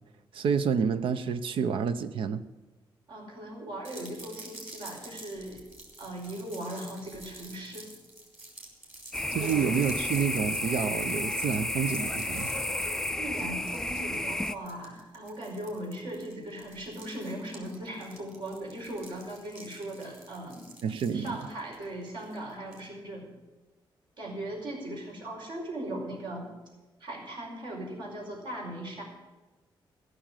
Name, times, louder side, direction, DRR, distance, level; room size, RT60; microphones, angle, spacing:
voice 1, 0.3-2.4 9.3-12.5 20.8-21.4, right 6 dB, 80° right, 12 dB, 0.7 m, -29 dB
voice 2, 3.1-5.6 6.0-7.9 9.4-9.7 13.0-20.7 21.1-23.3 24.2-26.5 27.0-29.0, right 1 dB, 60° right, -1 dB, 5.0 m, -39 dB
sound 1, 3.8-22.9, right 2 dB, 20° right, 3.5 m, -50 dB
sound 2, 9.1-14.6, left 1 dB, 5° left, 0.3 m, -32 dB
15.0 x 6.5 x 9.1 m, 1.2 s
wide cardioid pair, 155°, 9 cm